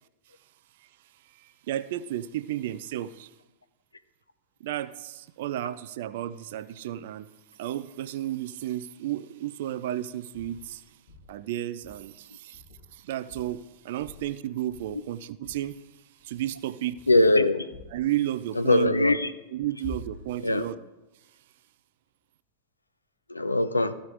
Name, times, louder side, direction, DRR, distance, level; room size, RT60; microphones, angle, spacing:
voice 1, 1.4-3.3 4.6-7.3 7.6-10.8 11.3-12.6 12.9-15.8 16.2-17.1 17.9-18.9 19.5-20.8, right 13 dB, 55° right, 0.3 m, -32 dB
sound 1, 10.3-10.7 11.1-11.4 11.8-12.1 12.5-13.0 13.3-13.6 14.0-14.4 14.7-15.1 15.4-15.7 16.2-16.5 16.9-17.3 17.7-18.1 19.8-20.4, left 3 dB, 60° left, 2.9 m, -46 dB
voice 2, 17.1-17.7 18.5-19.3 20.4-20.7 23.3-23.9, left 2 dB, 80° left, 0.5 m, -21 dB
14.5 x 5.1 x 3.5 m
figure-of-eight pair, 90°, 0 cm